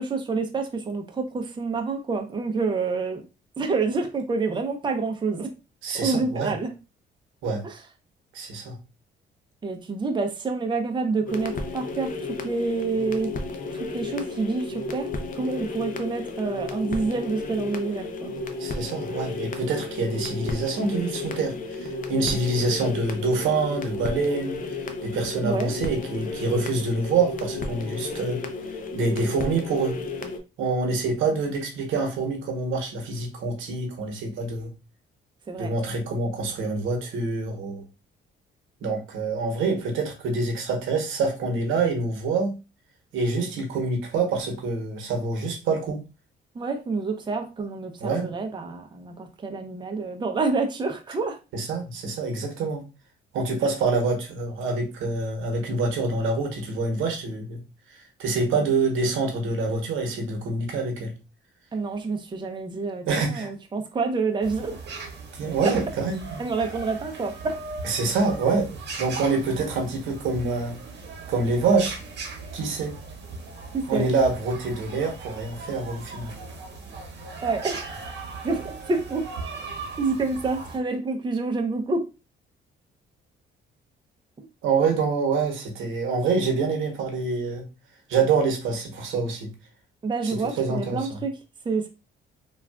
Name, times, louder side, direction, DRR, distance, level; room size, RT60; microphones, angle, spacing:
voice 1, 0.0-3.2 3.6-5.5 6.0-6.7 7.6-7.8 9.6-12.1 12.4-13.4 13.7-15.1 15.3-18.3 25.4-25.7 35.5-35.7 46.6-51.4 61.7-64.8 66.4-67.6 73.7-74.1 77.4-77.8 78.4-79.3 80.0-82.1 90.0-91.3 91.6-91.9, right 4 dB, 25° right, 4 dB, 0.6 m, -28 dB
voice 2, 5.8-6.5 7.4-7.6 8.3-8.8 18.6-24.6 25.0-28.4 28.9-30.0 30.6-34.7 35.6-37.8 38.8-42.5 43.1-46.0 48.0-48.3 51.5-52.8 53.3-57.6 58.2-61.1 63.1-63.5 65.4-66.4 67.8-68.7 69.0-70.8 71.3-72.0 72.5-72.9 73.9-76.3 84.6-87.6 88.1-89.5 90.2-91.2, right 3 dB, 90° right, 3 dB, 0.9 m, -26 dB
sound 1, 11.3-30.4, left 3 dB, 45° left, 0.6 m, -33 dB
sound 2, 64.4-80.8, right 3 dB, 60° right, 0.9 m, -38 dB
3.4 x 2.3 x 2.3 m, 0.29 s
cardioid pair, 90°, 20 cm